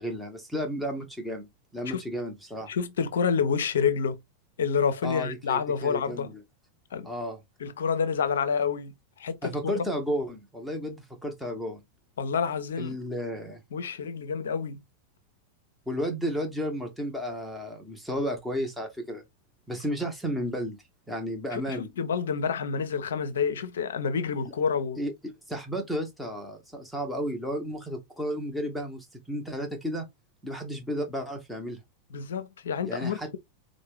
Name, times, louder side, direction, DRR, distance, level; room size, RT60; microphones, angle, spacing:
voice 1, 0.0-2.7 5.0-6.3 7.0-7.4 9.4-11.8 12.8-13.6 15.9-19.2 19.7-20.8 21.1-21.9 25.0-30.1 30.4-31.8 32.8-33.4, equal, ahead, 0.7 m, -33 dB
voice 2, 2.7-4.2 4.6-6.3 6.9-7.1 7.6-9.9 12.2-13.0 13.7-14.8 21.5-25.0 32.1-33.4, left 6 dB, 65° left, 0.5 m, -28 dB
4.3 x 2.1 x 3.1 m
figure-of-eight pair, 90°, 0 cm